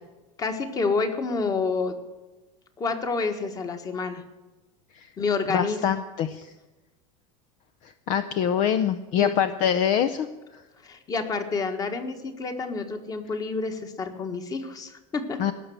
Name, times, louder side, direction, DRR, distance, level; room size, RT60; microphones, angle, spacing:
voice 1, 0.4-2.0 2.8-4.2 5.2-5.8 9.2-9.3 10.8-15.5, left 4 dB, 20° left, 7 dB, 1.6 m, -28 dB
voice 2, 5.5-6.5 7.8-10.3 15.4-15.5, left 9 dB, 45° left, 11 dB, 0.7 m, -24 dB
18.0 x 6.8 x 9.3 m, 1.2 s
supercardioid pair, 150°, 16 cm